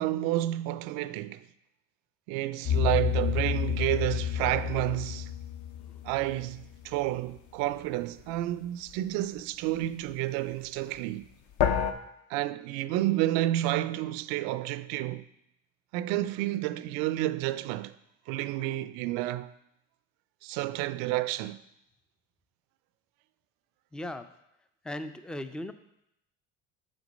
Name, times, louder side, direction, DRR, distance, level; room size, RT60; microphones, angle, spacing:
voice 1, 0.0-1.5 2.3-5.3 6.0-11.3 12.3-15.2 15.9-17.9 18.3-19.5 20.4-21.6, right 15 dB, 70° right, 0.5 m, -30 dB
sound 1, 2.7-6.8 11.6-11.9, left 9 dB, 55° left, 0.7 m, -29 dB
voice 2, 23.9-24.3 24.8-25.7, left 1 dB, 5° left, 0.3 m, -37 dB
6.0 x 5.2 x 5.2 m
supercardioid pair, 90°, 37 cm